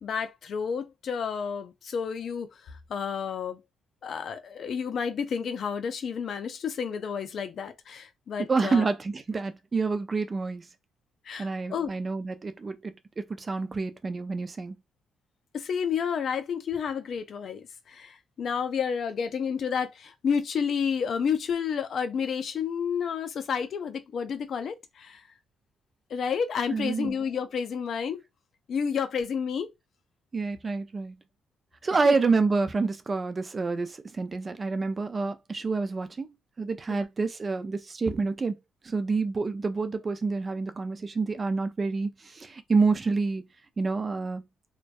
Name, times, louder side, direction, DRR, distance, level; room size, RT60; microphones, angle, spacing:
voice 1, 0.0-3.6 4.0-8.9 11.2-11.9 15.5-25.3 26.1-28.2 28.7-29.7 32.0-32.2 36.9-37.0, left 6 dB, 60° left, 0.4 m, -30 dB
voice 2, 8.5-10.7 11.4-14.8 26.7-27.1 30.3-31.2 31.8-36.3 36.6-38.6 38.8-43.4 43.8-44.4, right 4 dB, 30° right, 0.4 m, -28 dB
2.5 x 2.2 x 2.2 m
cardioid pair, 90°, 0 cm